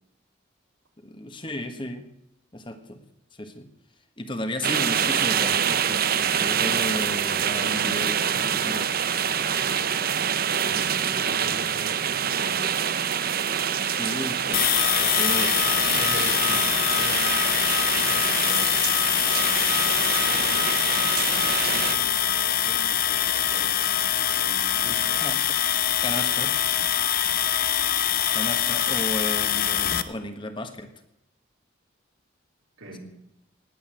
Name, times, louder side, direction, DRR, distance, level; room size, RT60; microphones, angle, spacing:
voice 1, 1.0-2.1 2.5-3.0 3.4-3.7 4.2-8.9 9.4-9.7 11.1-11.2 11.7-11.8 13.8-14.7 15.0-15.6 25.2-25.5 26.0-26.5 28.3-30.9, left 1 dB, 25° left, 8 dB, 1.4 m, -34 dB
sound 1, 4.6-22.0, right 8 dB, 45° right, 0.8 m, -26 dB
voice 2, 10.5-13.1 15.5-25.3 32.8-33.0, right 1 dB, 90° right, 2 dB, 3.4 m, -42 dB
sound 2, 14.5-30.0, left 10 dB, 45° left, 0.8 m, -24 dB
19.0 x 8.1 x 9.0 m, 0.83 s
head